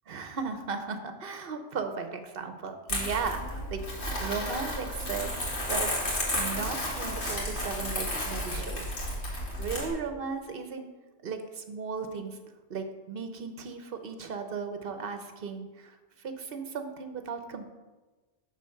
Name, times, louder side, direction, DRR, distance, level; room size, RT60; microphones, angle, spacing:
voice 1, 0.1-5.4 5.7-5.9 6.3-8.9 9.6-10.9 11.2-12.4 12.7-17.7, right 5 dB, 60° right, 7 dB, 1.0 m, -36 dB
Crumpling crinkling, 2.9-9.9, left 1 dB, 85° left, 2.3 m, -32 dB
9.2 x 3.8 x 6.5 m, 1.2 s
omnidirectional pair, 1.1 m